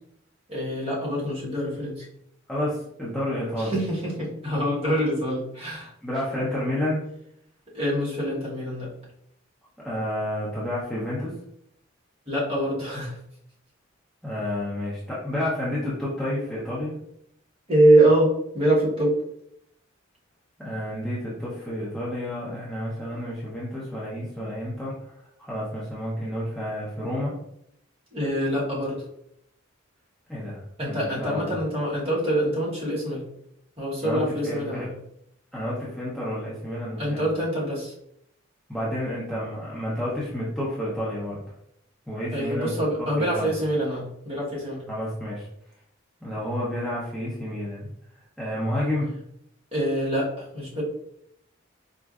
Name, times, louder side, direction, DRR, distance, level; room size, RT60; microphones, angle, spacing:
voice 1, 0.5-2.1 3.6-5.9 7.7-8.9 12.3-13.2 17.7-19.2 28.1-29.0 30.8-33.2 33.8-34.9 37.0-37.9 42.3-44.8 49.7-50.8, right 1 dB, 30° right, -6 dB, 1.2 m, -24 dB
voice 2, 2.5-3.7 6.0-7.0 9.8-11.3 14.2-16.9 20.6-24.9 25.4-27.3 30.3-31.6 34.0-34.8 35.5-37.3 38.7-41.4 42.1-42.7 43.2-43.5 44.9-45.5 46.2-47.9 48.4-49.1, left 1 dB, ahead, -9 dB, 0.7 m, -30 dB
4.3 x 2.5 x 2.4 m, 0.74 s
head